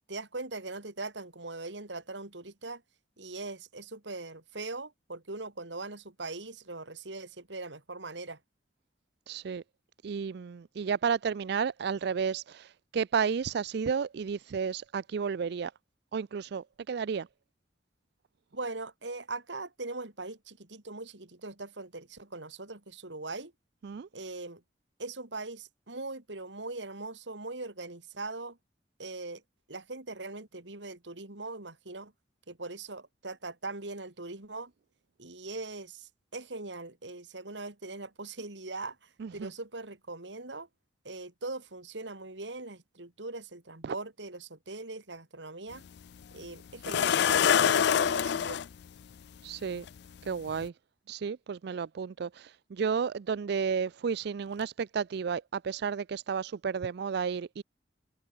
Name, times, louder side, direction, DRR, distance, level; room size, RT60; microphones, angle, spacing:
voice 1, 0.1-2.8 3.2-8.4 18.5-23.5 24.1-24.6 25.0-28.6 29.0-29.4 29.7-32.1 32.5-34.7 35.2-40.7 41.0-45.8 46.3-48.6, right 3 dB, 90° right, 3.3 m, -41 dB
voice 2, 9.3-9.6 10.0-15.7 16.1-17.3 23.8-24.1 39.2-39.5 43.8-43.9 49.4-49.9 50.2-50.7 51.1-57.6, right 6 dB, 65° right, 0.4 m, -32 dB
sound 1, 45.7-45.8 46.8-48.7 49.9-50.0 50.5-50.7, left 8 dB, 65° left, 0.4 m, -25 dB
head